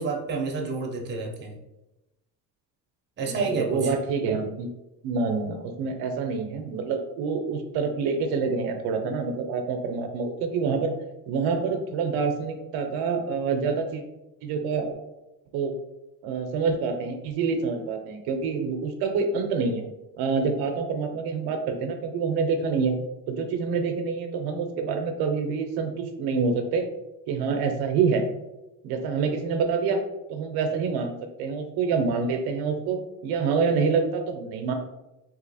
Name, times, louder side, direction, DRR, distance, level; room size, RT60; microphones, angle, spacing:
voice 1, 0.0-1.5 3.2-3.9, right 4 dB, 30° right, 0 dB, 0.6 m, -29 dB
voice 2, 3.3-4.7 5.0-10.9 11.3-14.0 14.4-14.9 15.5-15.7 16.2-19.8 20.2-23.0 23.3-26.9 27.3-28.2 28.8-30.0 30.3-34.7, right 5 dB, 75° right, 5 dB, 0.6 m, -27 dB
2.9 x 2.8 x 4.0 m, 0.96 s
cardioid pair, 150°, 38 cm